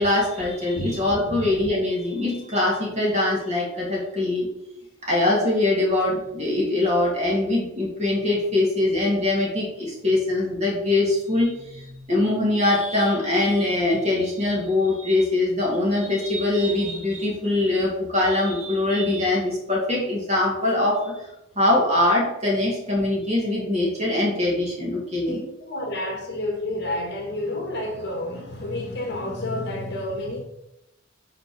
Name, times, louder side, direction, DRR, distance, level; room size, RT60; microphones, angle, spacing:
voice 1, 0.0-4.5 5.0-21.3 21.6-25.4, left 2 dB, 30° right, -3 dB, 2.4 m, -23 dB
voice 2, 0.8-1.4 25.2-30.4, left 1 dB, 50° left, 2 dB, 1.5 m, -30 dB
5.8 x 4.3 x 6.3 m, 0.88 s
head